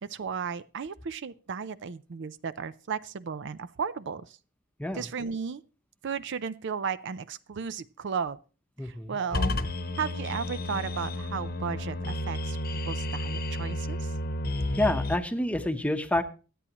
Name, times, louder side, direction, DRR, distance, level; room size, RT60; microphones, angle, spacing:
voice 1, 0.0-4.4 4.9-5.6 6.0-8.4 8.8-9.6 10.0-14.1, right 6 dB, 60° right, 0.5 m, -34 dB
voice 2, 8.8-9.2 14.7-16.2, left 1 dB, 5° left, 0.8 m, -28 dB
sound 1, 9.3-15.2, left 1 dB, 45° left, 1.0 m, -31 dB
24.0 x 8.5 x 2.9 m
head